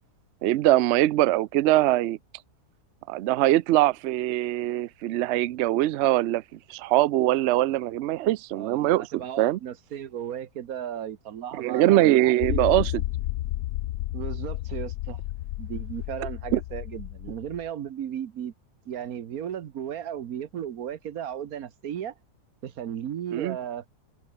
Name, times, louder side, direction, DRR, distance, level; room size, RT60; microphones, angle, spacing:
voice 1, 0.4-2.2 3.1-6.4 6.7-9.6 11.6-12.9 16.5-16.6 23.3-23.6, right 15 dB, 90° right, 0.6 m, -22 dB
voice 2, 8.5-12.8 14.1-15.2 15.6-18.5 18.8-22.1 22.6-23.9, right 9 dB, 65° right, 1.4 m, -35 dB
sound 1, 12.4-17.7, left 15 dB, 85° left, 1.2 m, -32 dB
omnidirectional pair, 1.7 m